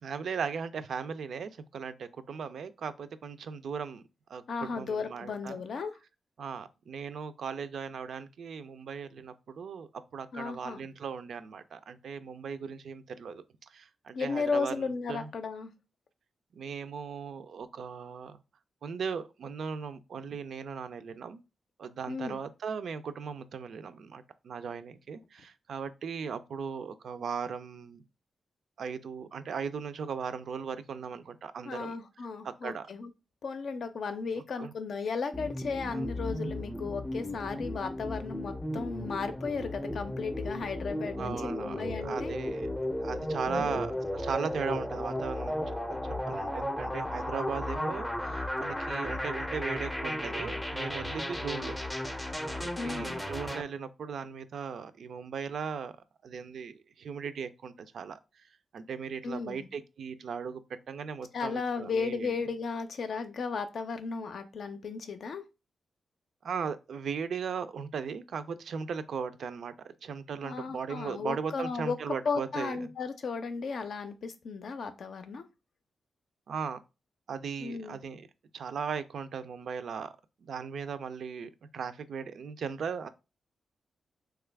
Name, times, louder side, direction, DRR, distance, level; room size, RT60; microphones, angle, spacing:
voice 1, 0.0-4.0 4.3-5.6 6.4-15.3 16.6-18.4 18.8-21.4 21.8-28.0 28.8-32.0 32.4-32.9 34.6-34.7 35.9-36.1 41.2-42.7 43.0-45.6 45.9-46.0 46.3-51.7 52.1-55.9 56.2-58.2 58.7-60.6 60.9-62.3 66.4-72.8 76.5-76.8 77.3-78.3 78.5-80.1 80.4-83.1, right 6 dB, 75° right, 0.4 m, -38 dB
voice 2, 4.5-6.0 10.3-10.8 14.1-15.7 22.1-22.4 31.6-33.1 33.4-42.4 43.5-43.8 52.8-53.2 59.2-59.7 61.3-65.4 70.4-75.4 77.6-78.0, left 5 dB, 70° left, 0.5 m, -35 dB
sound 1, 35.3-53.6, left 1 dB, 5° left, 0.5 m, -35 dB
3.1 x 2.3 x 3.3 m
cardioid pair, 80°, 0 cm